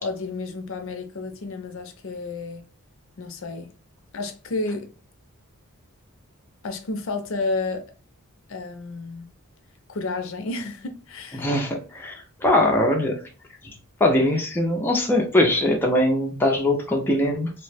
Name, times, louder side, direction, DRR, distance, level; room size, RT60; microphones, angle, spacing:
voice 1, 0.0-2.6 3.2-3.7 4.1-4.9 6.6-7.9 8.5-9.3 9.9-11.5, left 3 dB, 60° left, 0.5 m, -31 dB
voice 2, 11.3-13.2 14.0-17.5, left 1 dB, 10° left, 0.4 m, -21 dB
2.7 x 2.0 x 3.2 m
head